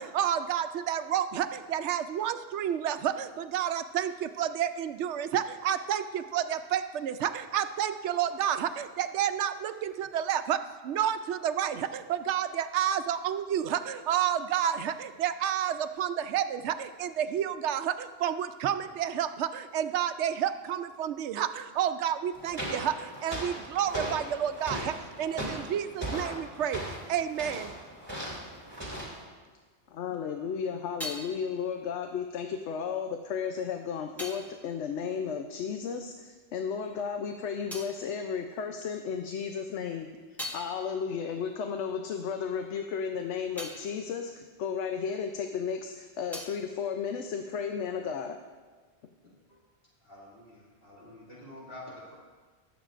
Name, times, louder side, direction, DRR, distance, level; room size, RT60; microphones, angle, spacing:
voice 1, 0.0-27.7, right 9 dB, 80° right, 10 dB, 0.9 m, -30 dB
sound 1, 22.3-29.2, right 1 dB, 20° right, 2.5 m, -38 dB
voice 2, 29.9-40.1 40.5-48.3, left 6 dB, 85° left, 5 dB, 0.9 m, -34 dB
sound 2, 30.3-36.2 36.4-39.1 39.5-45.6 45.8-47.9, equal, ahead, 1.2 m, -46 dB
voice 3, 50.0-52.1, left 1 dB, 55° left, -8 dB, 2.7 m, -48 dB
21.5 x 7.3 x 2.5 m, 1.4 s
omnidirectional pair, 1.2 m